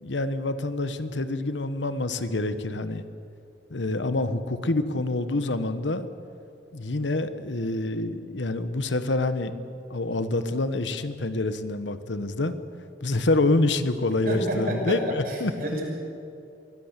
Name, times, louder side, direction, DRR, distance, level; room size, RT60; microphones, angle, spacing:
voice 1, 0.0-3.0 3.7-6.1 6.7-9.5 9.9-12.5 13.0-15.5, left 2 dB, 90° left, 11 dB, 1.2 m, -27 dB
voice 2, 14.3-15.8, equal, 55° right, -1 dB, 6.1 m, -29 dB
23.5 x 16.5 x 8.2 m, 2.6 s
head